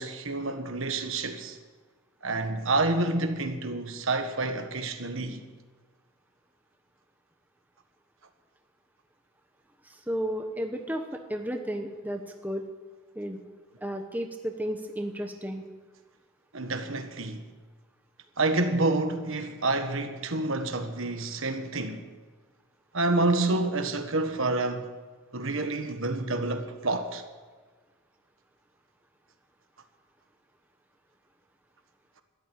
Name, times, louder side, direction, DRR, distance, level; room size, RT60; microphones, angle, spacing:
voice 1, 0.0-1.6 2.2-5.4 16.5-17.4 18.4-22.0 22.9-24.9 25.3-27.2, right 2 dB, 65° right, 1.4 m, -28 dB
voice 2, 9.9-12.6 13.2-13.4 13.8-15.6, equal, 5° right, 1.0 m, -33 dB
13.5 x 11.5 x 8.9 m
head